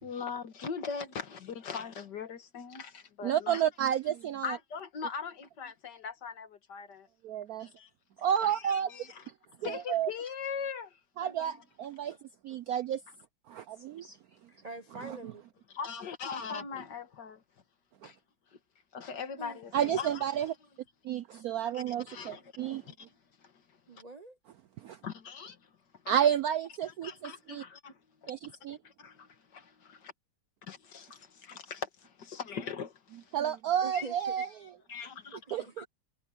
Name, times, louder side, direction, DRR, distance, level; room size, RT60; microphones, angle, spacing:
voice 1, 0.0-3.9 4.4-7.1 7.6-7.9 8.4-9.3 9.6-11.6 12.0-12.2 15.7-17.4 18.0-18.2 18.5-18.6 18.9-20.2 21.7-23.1 23.4-23.8 25.0-25.7 26.0-26.1 27.0-28.0 28.7-30.1 30.7-32.2 32.5-33.4 33.9-34.1 34.4-34.5 34.9-35.9, left 6 dB, 60° left, 2.1 m, -41 dB
voice 2, 3.2-4.6 7.2-7.7 8.2-8.9 9.6-10.1 11.2-12.2 12.4-13.0 13.5-14.2 15.0-15.1 19.7-20.5 21.0-22.8 24.8-25.0 26.1-27.6 28.3-28.8 33.3-34.5 35.5-35.8, right 9 dB, 70° right, 0.8 m, -31 dB
voice 3, 14.5-15.4 19.4-19.6 23.9-24.4 33.8-34.4 35.6-35.8, right 3 dB, 40° right, 0.5 m, -44 dB
omnidirectional pair, 2.2 m